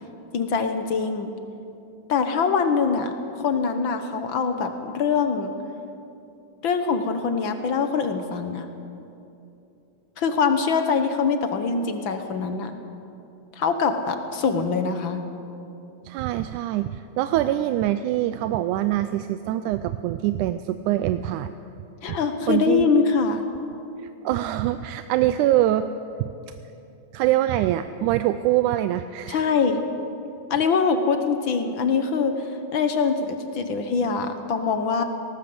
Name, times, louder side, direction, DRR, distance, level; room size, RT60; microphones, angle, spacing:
voice 1, 0.3-1.3 2.1-5.5 6.6-8.7 10.2-12.7 13.6-15.2 22.0-23.4 29.3-29.8 30.5-32.4 32.7-35.0, left 5 dB, 60° left, 7 dB, 1.4 m, -23 dB
voice 2, 16.1-21.5 22.1-22.2 22.5-22.9 24.0-25.9 27.1-29.5, right 13 dB, 85° right, 11 dB, 2.1 m, -24 dB
19.0 x 18.5 x 7.8 m, 2.8 s
omnidirectional pair, 3.5 m